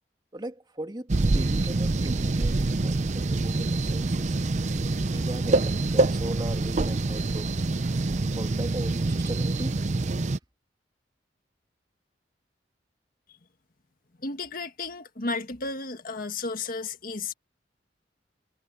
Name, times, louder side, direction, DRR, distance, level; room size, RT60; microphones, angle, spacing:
voice 1, 0.3-4.4 5.1-7.5 8.4-9.8, right 1 dB, 25° right, 2.4 m, -38 dB
sound 1, 1.1-10.4, right 2 dB, 40° right, 0.6 m, -26 dB
voice 2, 14.2-17.3, left 3 dB, 55° left, 1.6 m, -33 dB
head